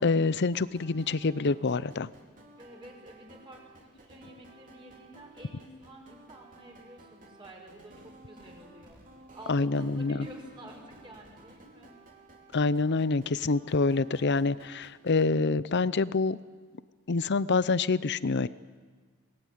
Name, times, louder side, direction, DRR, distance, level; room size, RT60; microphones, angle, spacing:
voice 1, 0.0-2.1 9.5-10.2 12.5-16.4 17.1-18.5, left 3 dB, 50° left, 17 dB, 0.6 m, -26 dB
sound 1, 0.5-15.3, right 2 dB, 35° right, 3.5 m, -55 dB
voice 2, 2.6-9.0 9.3-11.9, right 1 dB, 20° right, 0 dB, 5.2 m, -49 dB
24.0 x 19.5 x 9.3 m, 1.5 s
head